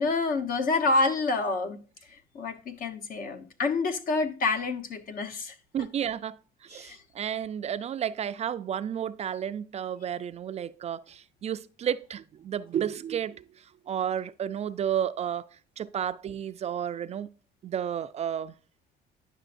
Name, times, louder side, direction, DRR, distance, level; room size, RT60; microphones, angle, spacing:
voice 1, 0.0-1.8 2.1-5.5 6.7-7.0, left 3 dB, 55° left, 1.1 m, -28 dB
voice 2, 5.7-6.4 6.6-15.5 15.8-17.3 17.6-18.5, right 9 dB, 40° right, 0.4 m, -32 dB
9.9 x 6.1 x 2.5 m
cardioid pair, 110°, 17 cm